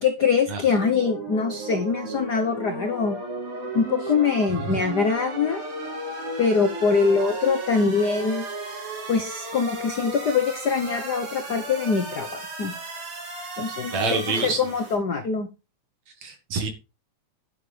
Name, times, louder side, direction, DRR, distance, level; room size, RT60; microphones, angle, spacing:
voice 1, 0.0-3.2 3.7-5.6 6.4-8.4 9.1-12.7 13.6-15.5, left 5 dB, 80° left, 6 dB, 0.9 m, -23 dB
sound 1, 0.8-15.0, right 2 dB, 80° right, 6.3 m, -34 dB
voice 2, 13.9-14.7 16.2-16.7, right 4 dB, 65° right, 5 dB, 3.0 m, -27 dB
11.0 x 11.0 x 3.4 m, 0.29 s
omnidirectional pair, 3.5 m